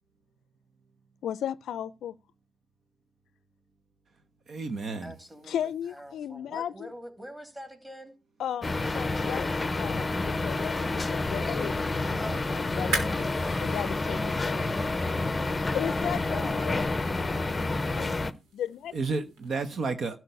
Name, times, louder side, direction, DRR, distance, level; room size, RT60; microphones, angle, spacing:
voice 1, 1.2-2.1 5.5-6.9 8.4-11.8 12.5-14.7 15.7-16.9 18.0-18.2 18.5-18.9, left 10 dB, 70° left, 0.5 m, -35 dB
voice 2, 4.5-5.1 18.9-20.2, right 4 dB, 55° right, 1.1 m, -31 dB
voice 3, 5.0-8.1 12.2-12.5 13.9-14.0 15.8-16.7, equal, 10° right, 3.1 m, -44 dB
sound 1, 8.6-18.3, left 2 dB, 20° left, 0.8 m, -29 dB
sound 2, 12.9-19.5, right 3 dB, 85° right, 3.7 m, -41 dB
12.5 x 4.8 x 8.1 m
cardioid pair, 90°, 0 cm